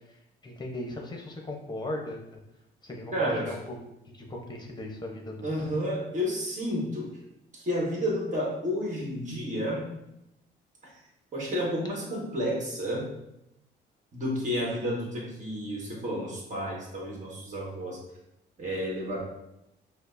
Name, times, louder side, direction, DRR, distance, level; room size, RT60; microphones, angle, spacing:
voice 1, 0.4-2.4 2.8-3.8 4.1-5.7, left 1 dB, 20° left, 1 dB, 0.8 m, -37 dB
voice 2, 3.1-3.5 5.4-7.1 7.5-9.9 10.8-10.9 11.3-13.1 14.1-18.0 18.6-19.2, equal, 40° right, -3 dB, 1.4 m, -31 dB
5.2 x 2.1 x 2.6 m, 0.86 s
cardioid pair, 90°, 20 cm